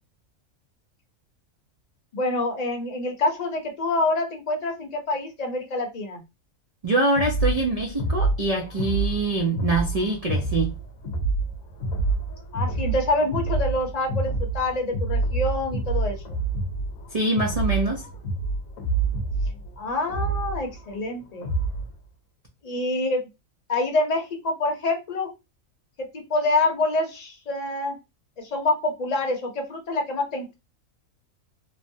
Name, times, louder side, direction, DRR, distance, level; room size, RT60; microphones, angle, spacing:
voice 1, 2.1-6.2 12.5-16.4 19.8-21.5 22.6-23.2 23.7-25.3 26.1-28.0 28.4-30.5, left 2 dB, 40° left, 0.7 m, -26 dB
voice 2, 6.8-10.7 17.1-18.1, right 2 dB, 85° right, 0.3 m, -24 dB
sound 1, 7.1-21.9, right 3 dB, 70° left, 1.1 m, -27 dB
3.0 x 2.0 x 2.6 m
omnidirectional pair, 1.4 m